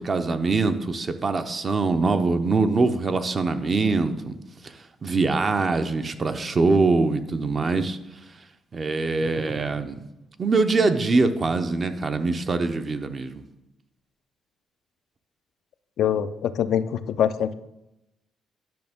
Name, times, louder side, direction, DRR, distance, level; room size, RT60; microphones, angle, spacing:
voice 1, 0.0-4.4 4.6-4.7 5.0-8.0 8.7-10.0 10.4-13.4, right 3 dB, 35° right, 8 dB, 0.7 m, -23 dB
voice 2, 16.0-17.5, left 9 dB, 75° left, 11 dB, 0.4 m, -24 dB
10.5 x 5.9 x 3.6 m, 0.91 s
cardioid pair, 90°, 0 cm